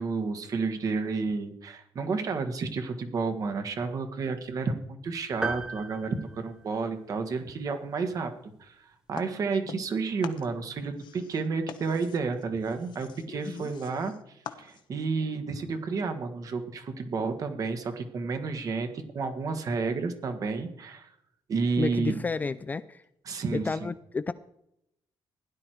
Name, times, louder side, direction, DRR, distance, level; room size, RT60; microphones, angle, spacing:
voice 1, 0.0-8.3 8.6-21.1 21.5-22.2 23.3-23.9, right 4 dB, 40° right, 7 dB, 1.7 m, -31 dB
sound 1, 5.4-7.2, right 2 dB, 10° right, 0.9 m, -36 dB
sound 2, 9.1-10.0 10.2-15.1, left 9 dB, 60° left, 1.1 m, -45 dB
voice 2, 13.3-13.7 21.8-23.0 23.5-24.3, left 4 dB, 20° left, 13 dB, 0.4 m, -31 dB
16.0 x 11.0 x 4.6 m, 0.78 s
cardioid pair, 170°, 9 cm